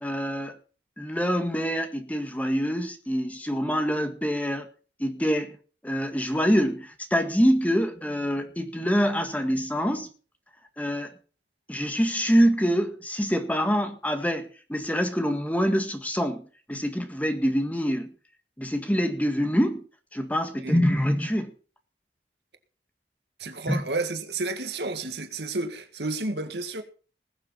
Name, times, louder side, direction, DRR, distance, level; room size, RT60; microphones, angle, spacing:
voice 1, 0.0-0.6 1.0-4.7 5.0-5.6 5.8-10.1 10.8-11.1 11.7-18.1 18.6-19.8 20.1-21.5 23.7-23.8, equal, 10° left, 1.7 m, -25 dB
voice 2, 23.4-26.8, right 2 dB, 75° right, 2.0 m, -31 dB
20.0 x 7.3 x 5.9 m
head